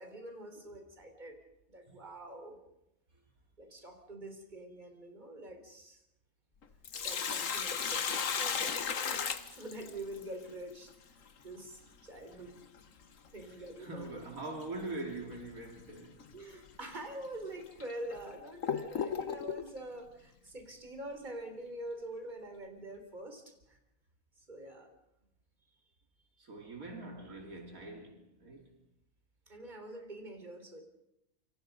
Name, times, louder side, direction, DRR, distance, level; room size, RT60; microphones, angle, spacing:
voice 1, 0.0-1.4 1.7-2.6 3.6-6.0 7.0-11.2 11.4-12.9 13.3-14.1 16.3-23.8 24.4-24.9 29.5-30.8, right 1 dB, 30° right, 4.0 m, -46 dB
Sink (filling or washing), 6.6-10.2 12.6-12.7 14.6-14.8 15.3-15.4 16.2-16.3 17.0-17.1 17.8-19.7, left 7 dB, 65° left, 1.6 m, -35 dB
voice 2, 13.8-16.3 26.4-28.7, right 2 dB, 70° right, 3.3 m, -43 dB
28.0 x 25.5 x 5.3 m
omnidirectional pair, 1.5 m